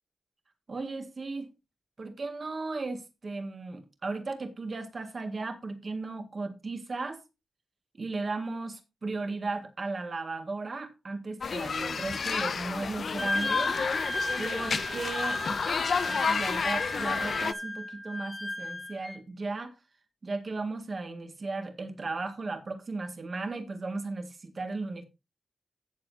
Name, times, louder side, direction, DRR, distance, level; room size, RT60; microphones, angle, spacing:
voice 1, 0.7-1.5 2.0-7.2 8.0-13.7 14.4-15.8 16.1-19.7 20.2-25.0, right 3 dB, 35° right, 1.9 m, -36 dB
sound 1, 11.4-17.5, left 5 dB, 50° left, 0.4 m, -30 dB
Wind instrument woodwind instrument, 13.2-19.2, left 1 dB, 10° left, 2.1 m, -34 dB
16.5 x 7.0 x 2.8 m
wide cardioid pair, 155°, 0 cm